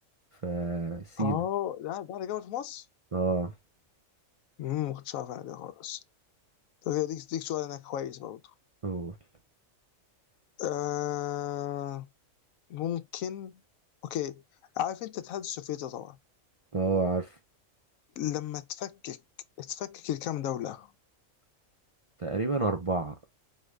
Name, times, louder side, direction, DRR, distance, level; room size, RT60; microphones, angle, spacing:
voice 1, 0.4-1.4 3.1-3.5 8.8-9.1 16.7-17.3 22.2-23.1, right 3 dB, 45° right, 0.4 m, -29 dB
voice 2, 1.2-2.8 4.6-6.0 6.8-8.4 10.6-12.1 12.7-13.6 14.0-14.4 14.8-16.2 18.2-19.2 19.6-20.9, left 11 dB, 90° left, 1.0 m, -34 dB
4.6 x 2.4 x 3.2 m
omnidirectional pair, 1.4 m